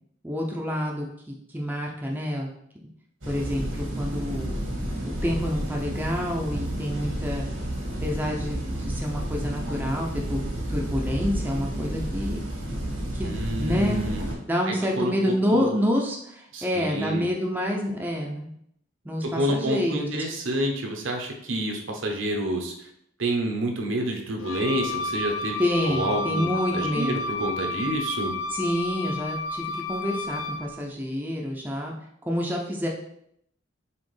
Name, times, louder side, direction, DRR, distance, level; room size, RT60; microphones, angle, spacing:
voice 1, 0.2-2.5 3.3-4.5 5.0-7.5 8.0-12.4 13.1-13.3 13.6-14.0 14.5-18.5 19.0-20.1 25.6-27.2 28.5-31.9 32.3-32.9, equal, 10° right, -1 dB, 0.5 m, -28 dB
sound 1, 3.2-14.3, right 1 dB, 90° right, 1.4 m, -31 dB
voice 2, 13.3-14.2 14.7-15.1 15.5-15.7 16.5-17.2 19.2-22.7 23.2-25.6 25.9-26.5 26.7-28.3, right 1 dB, 70° right, 3 dB, 0.8 m, -28 dB
Wind instrument woodwind instrument, 24.4-30.7, left 3 dB, 85° left, 0.4 m, -31 dB
4.2 x 3.5 x 3.2 m, 0.72 s
head